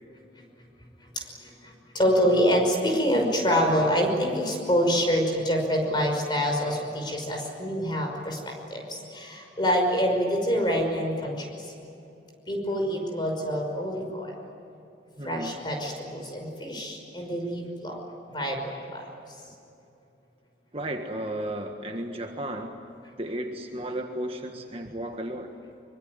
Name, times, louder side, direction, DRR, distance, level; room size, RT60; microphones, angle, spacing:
voice 1, 1.6-11.5 12.5-14.3 15.2-18.0 18.3-19.1, equal, 25° left, 2 dB, 5.6 m, -26 dB
voice 2, 15.2-15.5 20.7-22.8 23.2-25.5, right 1 dB, 30° right, 3 dB, 1.6 m, -34 dB
24.5 x 24.5 x 9.7 m, 2.7 s
head